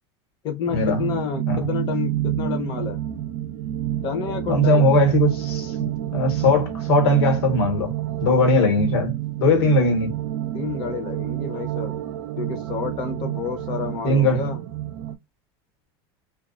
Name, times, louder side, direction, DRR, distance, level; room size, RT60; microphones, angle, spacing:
voice 1, 0.4-3.0 4.0-4.9 10.5-11.9 12.4-14.6, left 7 dB, 35° left, 0.7 m, -29 dB
sound 1, 0.7-15.2, right 12 dB, 80° right, 0.4 m, -29 dB
voice 2, 4.5-7.9 8.2-9.1 9.4-10.1 14.0-14.4, left 1 dB, 75° left, 1.2 m, -19 dB
2.3 x 2.3 x 2.4 m
supercardioid pair, 165°, 13 cm